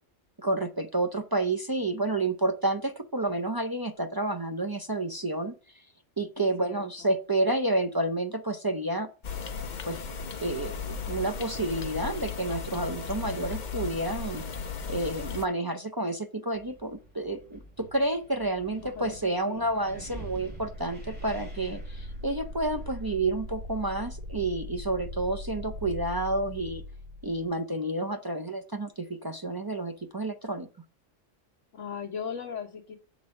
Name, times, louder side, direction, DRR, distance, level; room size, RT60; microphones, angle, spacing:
voice 1, 0.4-5.5 6.2-9.1 9.9-10.0 10.4-14.4 14.9-26.8 27.2-30.7, right 2 dB, 35° right, 5 dB, 0.3 m, -30 dB
voice 2, 6.4-6.9 18.9-19.7 31.7-33.0, left 6 dB, 75° left, -1 dB, 1.4 m, -38 dB
sound 1, 9.2-15.5, left 6 dB, 45° left, 0.8 m, -36 dB
Wind, 16.5-23.8, right 1 dB, 10° right, 2.2 m, -48 dB
sound 2, 20.1-27.6, left 1 dB, 90° right, 1.6 m, -40 dB
7.0 x 4.0 x 6.3 m, 0.35 s
omnidirectional pair, 1.3 m